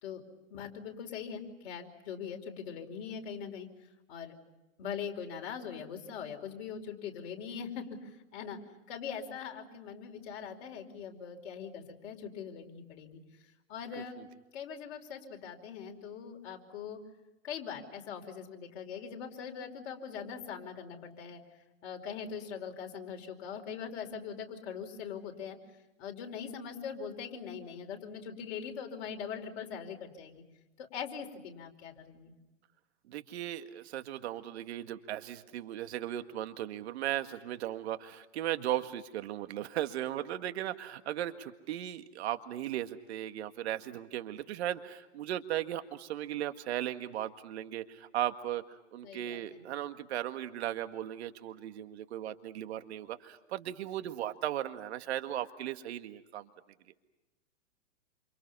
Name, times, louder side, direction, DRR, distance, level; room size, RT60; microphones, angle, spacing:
voice 1, 0.5-3.7 4.1-4.4 4.8-8.6 8.9-13.2 13.7-14.2 14.5-17.0 17.4-21.4 21.8-25.6 26.0-30.4 30.8-32.3 49.0-49.6, left 7 dB, 55° left, 3 dB, 5.0 m, -42 dB
voice 2, 33.1-56.5, right 12 dB, 60° right, 9 dB, 1.9 m, -37 dB
28.5 x 28.5 x 5.6 m, 1.0 s
hypercardioid pair, 130°, 37 cm